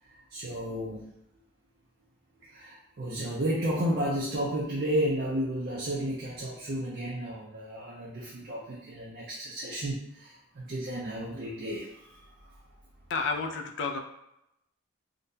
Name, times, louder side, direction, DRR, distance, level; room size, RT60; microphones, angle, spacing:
voice 1, 0.0-1.1 2.4-12.6, equal, 45° right, -4 dB, 0.4 m, -33 dB
voice 2, 13.1-14.0, left 4 dB, 55° left, 4 dB, 0.3 m, -30 dB
3.7 x 2.2 x 2.6 m, 0.84 s
head